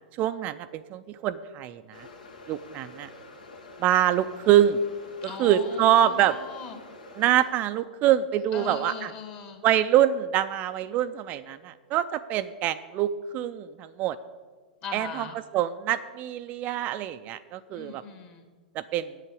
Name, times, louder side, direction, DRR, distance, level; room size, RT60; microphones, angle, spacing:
voice 1, 0.2-2.1 2.5-3.1 3.8-4.8 5.2-6.4 7.2-9.1 9.6-14.2 14.9-15.3 15.5-18.0 18.7-19.1, right 11 dB, 35° right, 11 dB, 0.4 m, -25 dB
sound 1, 1.9-7.5, left 2 dB, 70° left, 1.6 m, -47 dB
voice 2, 5.2-6.8 8.5-9.6 14.8-15.4 17.7-18.5, left 6 dB, 35° left, 4 dB, 2.2 m, -39 dB
8.5 x 8.1 x 8.4 m, 1.4 s
figure-of-eight pair, 100°, 5 cm